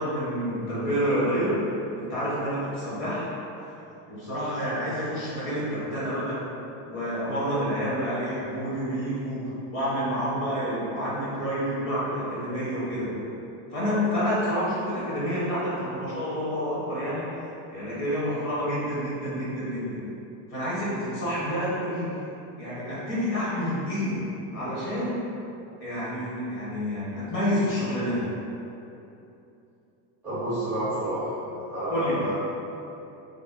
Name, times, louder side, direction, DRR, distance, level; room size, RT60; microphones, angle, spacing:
voice 1, 0.0-1.6 1.9-3.3 4.1-6.4 6.8-13.1 13.7-17.3 17.7-20.0 20.5-22.1 22.6-24.2 24.5-25.2 25.8-28.2 31.9-32.2, equal, 30° left, -9 dB, 0.9 m, -28 dB
voice 2, 30.2-32.3, right 1 dB, 5° right, -13 dB, 0.4 m, -29 dB
3.3 x 2.1 x 3.8 m, 2.9 s
cardioid pair, 180°, 42 cm